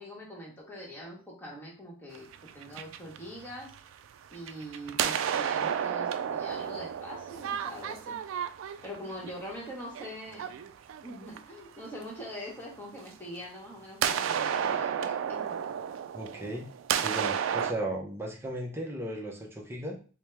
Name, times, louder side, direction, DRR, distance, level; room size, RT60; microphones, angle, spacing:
voice 1, 0.0-3.7 4.3-8.2 8.8-10.5 11.0-15.7, equal, 10° left, -4 dB, 1.1 m, -43 dB
sound 1, 2.2-3.9 4.3-11.6 13.1-13.2 14.0-17.7, right 8 dB, 90° right, 0.3 m, -32 dB
voice 2, 16.1-16.7 17.0-19.9, right 1 dB, 10° right, -1 dB, 0.6 m, -36 dB
4.4 x 2.1 x 3.3 m, 0.37 s
head